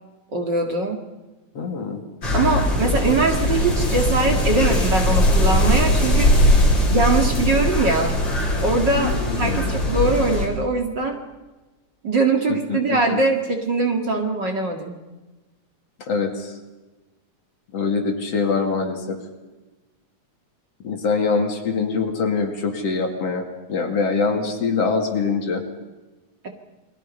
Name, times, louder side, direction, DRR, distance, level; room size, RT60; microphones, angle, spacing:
voice 1, 0.3-1.0 2.3-6.5 6.9-8.1 8.6-11.2 12.0-14.9, right 3 dB, 40° right, 3 dB, 2.6 m, -22 dB
voice 2, 1.5-2.0 8.9-9.7 12.5-13.2 16.0-16.5 17.7-19.2 20.8-25.6, left 4 dB, 55° left, 3 dB, 3.4 m, -24 dB
sound 1, 2.2-10.5, left 1 dB, 40° left, 5.8 m, -20 dB
29.5 x 22.0 x 5.5 m, 1.2 s
omnidirectional pair, 3.3 m